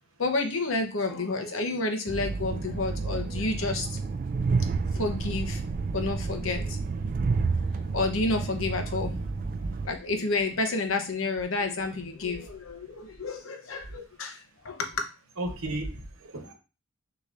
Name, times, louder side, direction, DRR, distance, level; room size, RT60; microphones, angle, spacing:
voice 1, 0.2-4.0 4.9-5.6 5.9-6.8 7.7-9.1 9.8-15.1, left 3 dB, 70° left, 4 dB, 0.9 m, -30 dB
Train, 2.1-9.9, right 4 dB, 40° right, 0.3 m, -30 dB
voice 2, 15.4-16.5, right 1 dB, 85° right, 5 dB, 1.0 m, -34 dB
6.3 x 3.0 x 2.5 m, 0.32 s
head